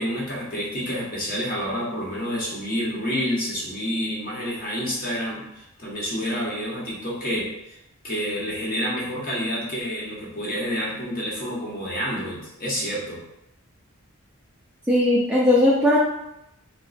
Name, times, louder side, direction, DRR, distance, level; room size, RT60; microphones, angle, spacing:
voice 1, 0.0-7.8 8.0-13.2, equal, 40° left, -5 dB, 0.9 m, -28 dB
voice 2, 14.9-16.0, left 1 dB, 5° right, -6 dB, 0.3 m, -18 dB
2.9 x 2.1 x 4.0 m, 0.85 s
head